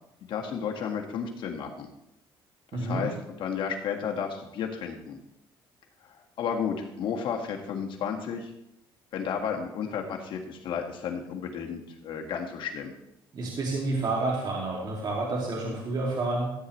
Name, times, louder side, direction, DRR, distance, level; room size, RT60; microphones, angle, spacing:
voice 1, 0.3-1.9 2.7-5.2 6.4-8.5 9.1-12.9, left 7 dB, 65° left, 2 dB, 1.8 m, -32 dB
voice 2, 2.7-3.1 13.3-16.5, right 2 dB, 50° right, -2 dB, 2.4 m, -29 dB
14.0 x 8.4 x 3.2 m, 0.84 s
cardioid pair, 100°, 9 cm